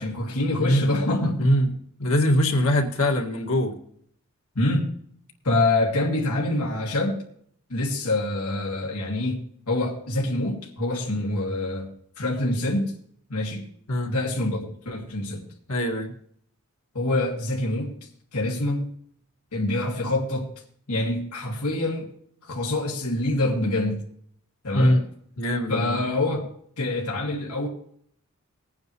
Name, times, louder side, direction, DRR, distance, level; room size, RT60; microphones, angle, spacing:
voice 1, 0.0-1.5 4.6-4.9 5.4-7.2 7.7-11.9 12.2-12.9 13.3-13.7 14.1-15.5 16.9-18.9 19.5-20.5 20.9-22.1 22.4-24.0 24.6-25.0 25.7-26.5 26.8-27.7, left 2 dB, 85° left, -2 dB, 2.3 m, -26 dB
voice 2, 2.0-3.7 13.9-14.1 15.7-16.1 24.7-25.0 25.4-26.0, left 1 dB, 65° left, 2 dB, 2.0 m, -22 dB
20.0 x 9.4 x 3.1 m, 0.64 s
head